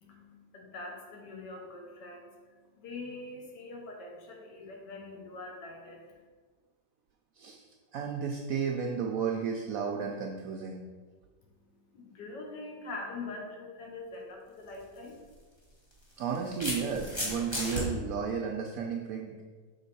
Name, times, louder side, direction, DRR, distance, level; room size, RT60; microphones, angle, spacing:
voice 1, 0.0-6.3 11.4-15.2, left 3 dB, 70° left, 1 dB, 1.5 m, -44 dB
voice 2, 7.4-7.7 7.9-10.8 16.2-19.4, right 6 dB, 75° right, 0 dB, 0.8 m, -33 dB
sound 1, 14.7-14.8 15.9-17.8, equal, 20° left, 1.0 m, -34 dB
6.1 x 3.8 x 4.1 m, 1.5 s
omnidirectional pair, 2.0 m